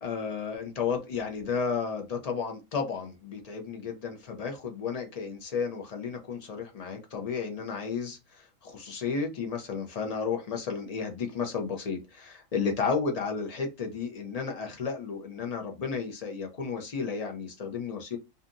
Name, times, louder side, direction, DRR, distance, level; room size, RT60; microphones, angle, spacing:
voice 1, 0.0-18.2, left 5 dB, 65° left, 4 dB, 0.4 m, -33 dB
2.7 x 2.4 x 2.4 m, 0.25 s
omnidirectional pair, 1.4 m